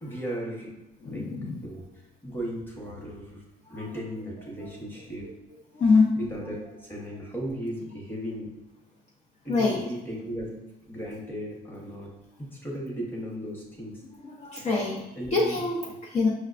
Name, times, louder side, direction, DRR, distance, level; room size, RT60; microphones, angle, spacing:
voice 1, 0.0-0.8 1.0-1.3 1.6-1.9 2.2-5.3 6.2-8.5 9.4-12.1 12.4-14.0 15.1-15.6, equal, 10° left, -2 dB, 1.0 m, -36 dB
voice 2, 1.0-1.6 3.7-3.8 5.7-6.2 9.5-9.8 14.2-16.3, left 3 dB, 40° left, -3 dB, 0.6 m, -25 dB
5.7 x 2.2 x 2.4 m, 1.0 s
cardioid pair, 110°, 17 cm